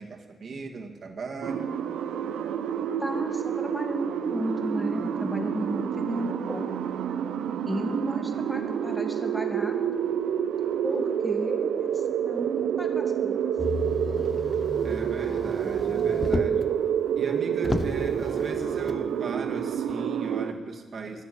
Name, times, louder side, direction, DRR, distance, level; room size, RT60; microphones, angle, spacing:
voice 1, 0.0-1.7 14.8-16.6 17.2-21.2, right 3 dB, 55° right, 2 dB, 1.7 m, -37 dB
sound 1, 1.4-20.5, right 8 dB, 90° right, 0.6 m, -28 dB
voice 2, 3.0-6.7 7.7-9.8 10.8-13.5, equal, ahead, 3 dB, 2.0 m, -33 dB
Motor vehicle (road), 13.6-16.7 17.2-17.3 17.6-19.0 19.9-20.0, left 3 dB, 30° left, 0.7 m, -33 dB
12.5 x 7.4 x 9.6 m, 1.4 s
cardioid pair, 85°, 0 cm